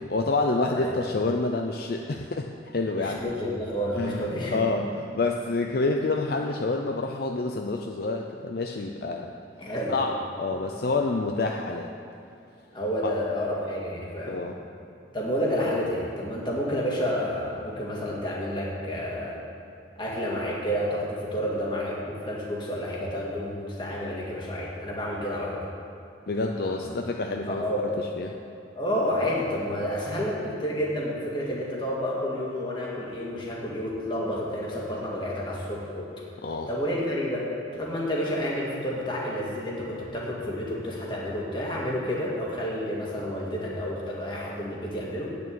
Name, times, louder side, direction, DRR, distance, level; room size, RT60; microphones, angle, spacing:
voice 1, 0.0-3.2 4.0-9.3 9.9-11.9 13.0-13.1 14.3-14.6 26.3-27.6 28.2-28.3 36.4-36.7, left 3 dB, 55° left, 3 dB, 0.5 m, -28 dB
voice 2, 3.0-4.7 9.6-10.0 12.7-14.4 15.1-19.4 20.0-25.6 26.6-26.9 27.5-27.9 28.8-36.1 36.7-45.3, equal, 25° left, -4 dB, 2.0 m, -30 dB
8.9 x 6.7 x 8.5 m, 2.7 s
head